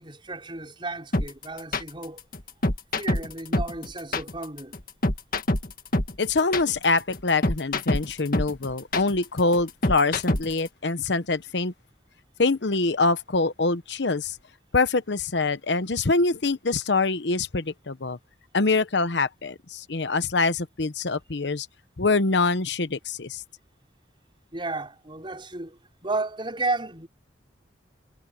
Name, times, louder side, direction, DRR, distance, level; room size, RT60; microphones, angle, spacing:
voice 1, 0.0-2.2 2.9-4.7 24.5-27.1, right 3 dB, 25° right, 5.7 m, -33 dB
sound 1, 1.1-10.7, left 2 dB, 50° left, 1.8 m, -26 dB
voice 2, 6.2-11.7 12.4-14.4 14.7-18.2 18.5-21.7 22.0-23.4, left 3 dB, 70° left, 0.9 m, -24 dB
head